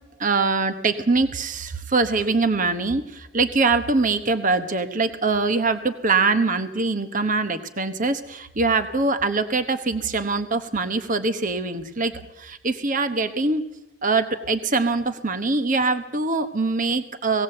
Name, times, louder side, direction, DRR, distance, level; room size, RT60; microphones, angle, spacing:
voice 1, 0.2-12.1 12.4-13.6 14.0-17.4, right 3 dB, 40° right, 10 dB, 1.1 m, -23 dB
18.5 x 18.0 x 7.8 m, 0.89 s
head